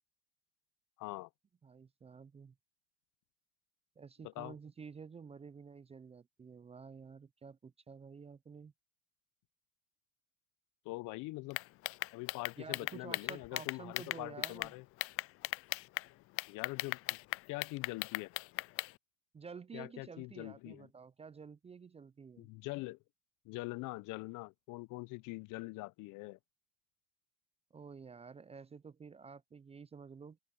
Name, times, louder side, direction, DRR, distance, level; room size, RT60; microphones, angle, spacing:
voice 1, 1.0-1.3 4.2-4.5 10.8-11.6 12.1-14.8 16.5-17.2 17.5-18.3 19.7-20.9 22.4-23.0 23.4-26.4, left 22 dB, 55° left, 0.9 m, -43 dB
voice 2, 1.6-2.5 4.0-8.7 12.6-14.7 19.3-22.5 27.7-30.4, right 5 dB, 15° right, 0.6 m, -51 dB
sound 1, 11.5-14.7 15.0-16.1 16.4-18.9, left 19 dB, 40° left, 0.4 m, -37 dB
open air
hypercardioid pair, 95°, 36 cm